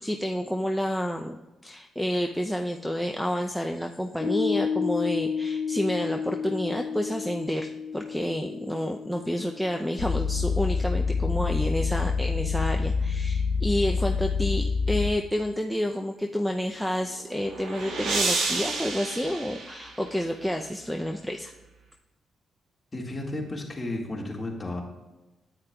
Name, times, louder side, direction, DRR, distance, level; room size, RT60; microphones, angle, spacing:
voice 1, 0.0-1.4 1.6-21.5, equal, ahead, 4 dB, 0.5 m, -29 dB
Piano, 4.2-11.0, left 6 dB, 50° left, 1.6 m, -32 dB
sound 1, 10.0-15.1, left 5 dB, 85° left, 0.5 m, -26 dB
sound 2, 17.0-20.4, right 3 dB, 80° right, 1.4 m, -31 dB
voice 2, 22.9-24.8, left 2 dB, 25° left, -1 dB, 1.8 m, -33 dB
9.6 x 8.6 x 2.3 m, 1.0 s
cardioid pair, 85°, 0 cm